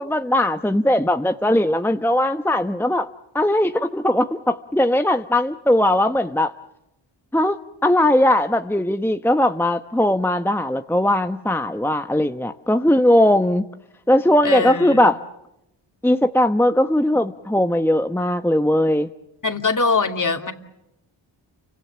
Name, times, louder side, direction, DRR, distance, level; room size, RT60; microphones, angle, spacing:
voice 1, 0.0-3.1 3.3-6.5 7.3-7.6 7.8-13.6 14.1-15.1 16.0-19.1, left 1 dB, 5° left, 8 dB, 1.0 m, -19 dB
voice 2, 14.4-15.1 19.4-20.5, left 4 dB, 40° left, 5 dB, 2.7 m, -22 dB
29.0 x 25.0 x 7.1 m, 0.88 s
cardioid pair, 60°, 47 cm